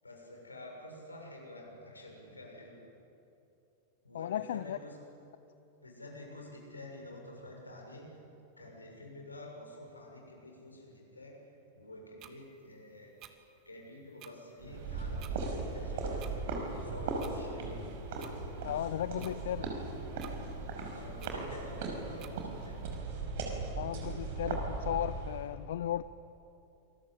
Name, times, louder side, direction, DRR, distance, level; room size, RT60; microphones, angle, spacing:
voice 1, 0.0-2.8 4.0-5.0 5.8-8.1 8.6-11.4 11.7-13.1 13.7-17.9 20.8-22.8, left 1 dB, 80° left, 0 dB, 6.9 m, -49 dB
voice 2, 4.1-4.8 18.6-19.7 23.8-26.0, left 11 dB, 60° left, 16 dB, 0.5 m, -35 dB
sound 1, 12.2-12.3 13.2-13.3 14.2-14.3 15.2-15.3 16.2-16.3 17.2-17.3 18.2-18.3 19.2-19.3 20.2-20.3 21.2-21.3 22.2-22.3, right 13 dB, 35° right, 1.9 m, -50 dB
sound 2, 14.6-25.5, right 3 dB, 55° right, 5.6 m, -38 dB
27.5 x 21.5 x 8.5 m, 2.9 s
figure-of-eight pair, 90°, 0 cm